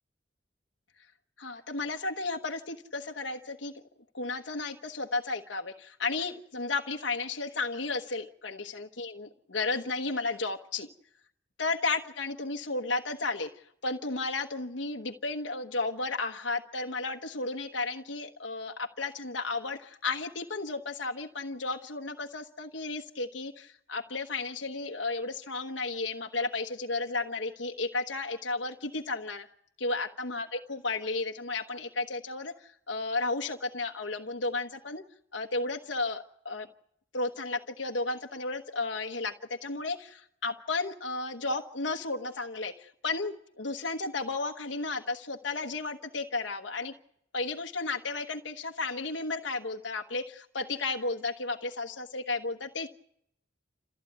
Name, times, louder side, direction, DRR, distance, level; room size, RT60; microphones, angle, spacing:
voice 1, 1.4-3.7 4.1-10.9 11.6-13.5 13.8-29.5 29.8-35.0 35.3-36.7 37.1-46.9 47.3-52.9, left 3 dB, 80° left, 2 dB, 1.2 m, -33 dB
28.5 x 15.0 x 9.4 m, 0.72 s
head